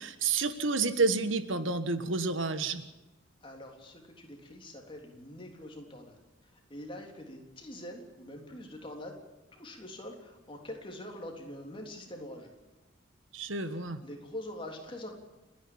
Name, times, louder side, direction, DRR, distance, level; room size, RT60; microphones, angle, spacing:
voice 1, 0.0-2.8 13.3-14.0, right 4 dB, 75° right, 11 dB, 1.5 m, -29 dB
voice 2, 3.4-6.2 6.4-9.1 9.5-12.5 13.7-15.2, left 1 dB, 25° left, 1 dB, 3.5 m, -44 dB
30.0 x 10.5 x 8.8 m, 1.1 s
head